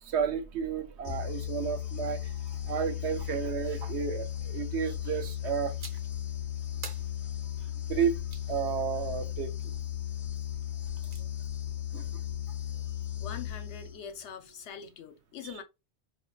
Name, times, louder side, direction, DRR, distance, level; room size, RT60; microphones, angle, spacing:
voice 1, 0.0-5.7 7.9-8.2 8.5-9.5 11.9-12.2 15.4-15.5, right 7 dB, 70° right, 0.9 m, -32 dB
sound 1, 1.1-14.2, left 11 dB, 50° left, 0.5 m, -36 dB
sound 2, 5.8-6.2 6.8-8.5 10.6-11.2, right 5 dB, 45° right, 0.6 m, -47 dB
voice 2, 12.9-15.6, left 7 dB, 75° left, 0.9 m, -43 dB
4.3 x 2.3 x 2.3 m
omnidirectional pair, 1.2 m